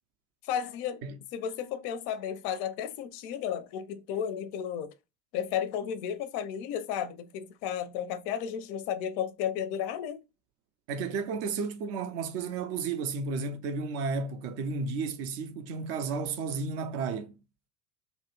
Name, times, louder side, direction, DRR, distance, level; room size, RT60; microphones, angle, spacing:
voice 1, 0.4-1.0 1.3-4.9 5.3-10.2, left 9 dB, 45° left, 0.5 m, -33 dB
voice 2, 10.9-17.3, right 4 dB, 35° right, 0.4 m, -33 dB
2.5 x 2.0 x 2.9 m
figure-of-eight pair, 75°, 49 cm